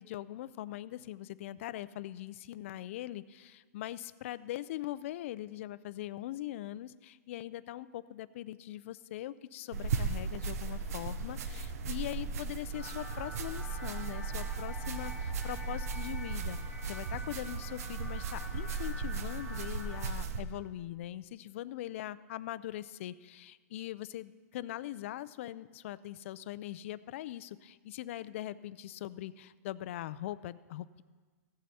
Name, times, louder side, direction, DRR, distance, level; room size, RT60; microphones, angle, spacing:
voice 1, 0.0-16.6 16.8-31.0, left 14 dB, 50° left, 17 dB, 0.4 m, -41 dB
sound 1, 9.7-20.4, right 4 dB, 65° right, 0.9 m, -37 dB
sound 2, 12.7-20.1, equal, 5° right, 2.5 m, -48 dB
15.5 x 7.6 x 4.2 m, 1.4 s
hypercardioid pair, 155°, 9 cm